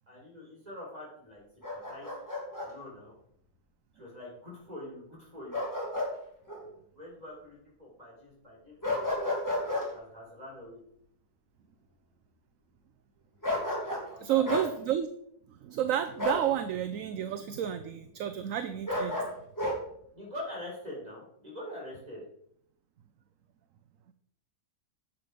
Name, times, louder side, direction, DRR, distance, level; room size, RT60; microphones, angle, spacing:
voice 1, 0.1-2.1 2.6-3.1 3.9-5.6 7.0-9.2 9.5-10.8 14.1-14.7 20.1-22.2, left 1 dB, 25° right, -3 dB, 4.4 m, -45 dB
Bark, 1.6-2.7 5.5-6.1 6.5-6.6 8.8-9.9 13.4-14.1 14.4-14.7 16.2-16.5 18.9-19.8, left 1 dB, 10° left, 2.8 m, -31 dB
voice 2, 14.2-15.1 15.5-19.3, right 10 dB, 65° right, 10 dB, 1.0 m, -31 dB
10.5 x 7.6 x 4.9 m, 0.71 s
omnidirectional pair, 1.7 m